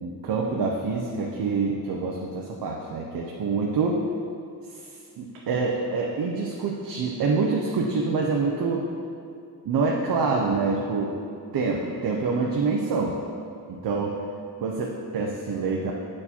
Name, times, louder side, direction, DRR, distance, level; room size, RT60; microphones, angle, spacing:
voice 1, 0.0-4.1 4.7-4.9 5.2-8.9 9.6-11.2 11.5-13.2 13.7-14.2 14.6-15.9, right 4 dB, 75° right, -1 dB, 0.7 m, -26 dB
8.6 x 4.5 x 4.3 m, 2.4 s
wide cardioid pair, 125°, 37 cm